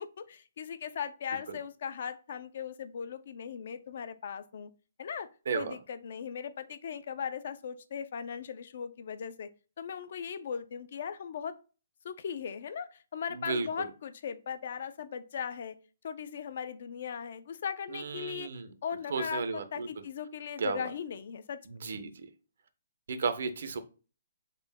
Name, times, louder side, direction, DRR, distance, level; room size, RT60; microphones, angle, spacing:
voice 1, 0.0-4.7 5.0-5.3 5.5-9.5 9.8-11.6 12.0-15.8 16.0-18.5 18.8-21.6, left 7 dB, 55° left, 0.3 m, -38 dB
voice 2, 13.3-13.9 17.9-18.7 19.1-19.9 20.6-20.9 21.7-22.3 23.1-23.8, right 5 dB, 65° right, 0.6 m, -34 dB
3.7 x 2.1 x 3.4 m
hypercardioid pair, 165°, 0 cm